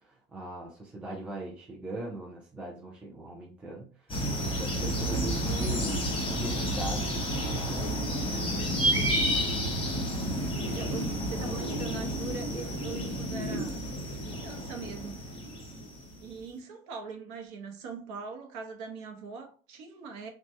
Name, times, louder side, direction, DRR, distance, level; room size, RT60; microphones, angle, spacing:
voice 1, 0.0-8.4, right 2 dB, 5° right, 0.3 m, -40 dB
sound 1, 4.1-16.2, equal, 15° left, 0.9 m, -30 dB
voice 2, 10.4-13.8 14.2-15.2 16.2-20.3, right 5 dB, 40° right, 0.8 m, -42 dB
3.1 x 2.2 x 2.6 m
figure-of-eight pair, 75°, 39 cm